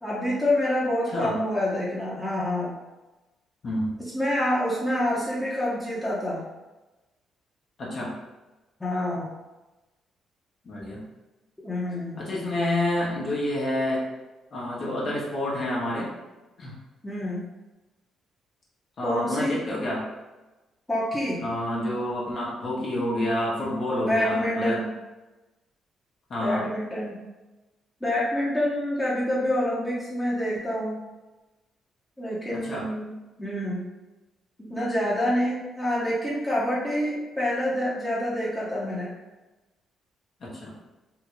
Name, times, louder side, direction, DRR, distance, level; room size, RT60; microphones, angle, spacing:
voice 1, 0.0-2.7 4.0-6.4 8.8-9.3 11.6-12.2 17.0-17.4 19.0-19.6 20.9-21.4 24.0-24.9 26.4-27.2 28.0-31.0 32.2-33.1 33.4-33.9 34.7-39.1, left 1 dB, 10° left, -8 dB, 0.9 m, -27 dB
voice 2, 3.6-4.0 7.8-8.1 10.6-11.0 12.2-14.0 14.5-16.1 16.6-16.7 19.0-20.1 21.4-24.8 26.3-26.7 32.5-32.9 40.4-40.7, left 1 dB, 55° left, -5 dB, 1.0 m, -28 dB
3.6 x 2.3 x 3.1 m, 1.1 s
cardioid pair, 90°, 0 cm